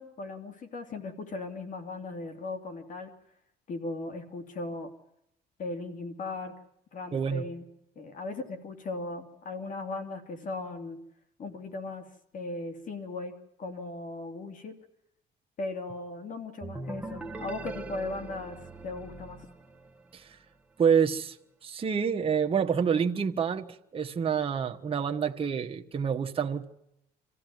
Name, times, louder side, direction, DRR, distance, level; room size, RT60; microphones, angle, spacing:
voice 1, 0.0-3.1 3.7-4.9 5.6-6.5 6.9-7.7 8.0-11.0 11.4-12.1 12.3-13.3 13.6-14.8 15.6-19.5, left 2 dB, 50° left, 2.9 m, -37 dB
voice 2, 7.1-7.4 20.1-20.4 20.8-21.4 21.6-23.7 23.9-26.6, right 7 dB, 35° right, 1.3 m, -27 dB
sound 1, 16.6-20.3, right 2 dB, 10° right, 1.4 m, -41 dB
26.5 x 15.0 x 9.5 m
cardioid pair, 110°, 17 cm